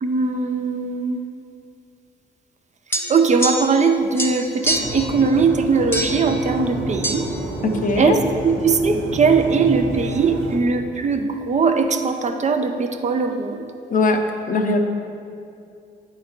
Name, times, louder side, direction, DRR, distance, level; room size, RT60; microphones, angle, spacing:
voice 1, 0.0-1.2 3.1-7.2 8.0-8.1 8.4-13.7, right 4 dB, 40° right, 6 dB, 0.5 m, -20 dB
sound 1, 2.9-3.9 4.2-5.1 5.9-6.3 7.0-7.2, equal, 10° left, 0.8 m, -25 dB
sound 2, 4.6-10.6, right 2 dB, 85° right, 1.0 m, -30 dB
voice 2, 7.6-8.2 13.9-14.2 14.5-14.8, left 3 dB, 45° left, 5 dB, 0.7 m, -19 dB
8.4 x 3.9 x 4.4 m, 2.5 s
supercardioid pair, 60°, 19 cm